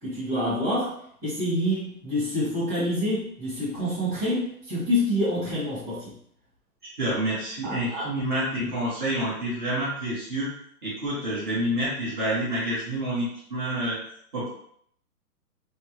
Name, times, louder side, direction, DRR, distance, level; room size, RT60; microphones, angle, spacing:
voice 1, 0.0-0.9 1.2-6.1 7.6-8.1, left 1 dB, 5° right, -16 dB, 1.2 m, -27 dB
voice 2, 7.0-10.5 10.8-14.0 14.3-14.5, right 1 dB, 30° right, -9 dB, 1.2 m, -28 dB
3.4 x 2.0 x 2.8 m, 0.66 s
hypercardioid pair, 165°, 47 cm